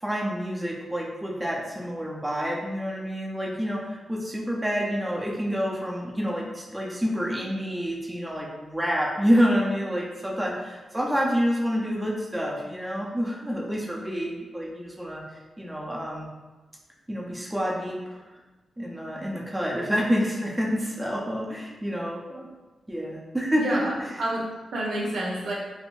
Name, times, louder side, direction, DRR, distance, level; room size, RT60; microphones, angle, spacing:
voice 1, 0.0-15.2 15.6-16.3 17.1-18.0 18.8-22.5 22.9-23.8, equal, 15° right, -3 dB, 0.6 m, -28 dB
voice 2, 23.5-25.5, right 1 dB, 85° right, -3 dB, 0.7 m, -29 dB
3.4 x 2.6 x 2.5 m, 1.2 s
cardioid pair, 100°, 0 cm